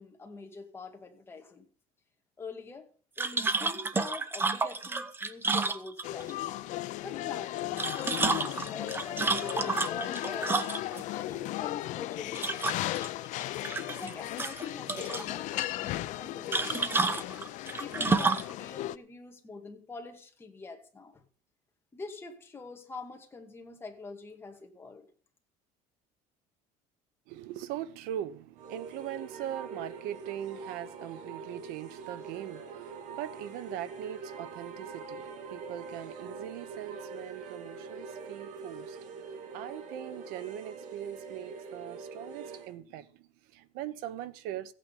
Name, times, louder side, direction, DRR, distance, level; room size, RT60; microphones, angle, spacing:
voice 1, 0.0-1.7 2.4-2.9 3.2-6.5 7.0-10.8 11.1-13.2 13.9-17.3 17.8-21.2 21.9-25.1, left 4 dB, 15° left, 2.1 m, -45 dB
sound 1, 3.2-6.3 7.6-11.0 12.4-13.1 13.4-14.1 14.4-15.3 16.5-18.5, right 3 dB, 15° right, 0.8 m, -30 dB
sound 2, 6.0-19.0, left 15 dB, 55° left, 0.6 m, -36 dB
voice 2, 27.3-44.7, right 11 dB, 80° right, 1.1 m, -41 dB
sound 3, 28.6-42.8, right 4 dB, 55° right, 2.2 m, -44 dB
15.5 x 8.8 x 5.5 m
cardioid pair, 160°, 15 cm